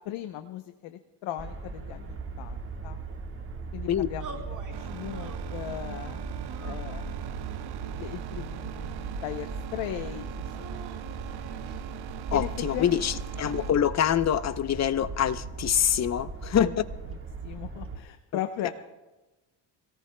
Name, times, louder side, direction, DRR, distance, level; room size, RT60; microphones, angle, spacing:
voice 1, 0.0-3.0 3.7-6.2 6.6-7.1 7.8-9.0 9.2-10.7 12.3-13.0 16.5-16.7 17.4-18.7, left 12 dB, 80° left, 7 dB, 0.9 m, -37 dB
sound 1, 1.4-18.0, right 4 dB, 30° right, 1.5 m, -38 dB
sound 2, 4.2-4.8 5.1-5.8 6.4-7.4 8.1-9.1 10.5-11.8, right 4 dB, 45° right, 3.2 m, -47 dB
sound 3, 4.7-13.7, right 12 dB, 60° right, 0.7 m, -41 dB
voice 2, 12.3-16.7 18.6-18.7, left 9 dB, 35° left, 14 dB, 0.7 m, -25 dB
27.0 x 18.0 x 2.2 m, 1.1 s
cardioid pair, 105°, 45 cm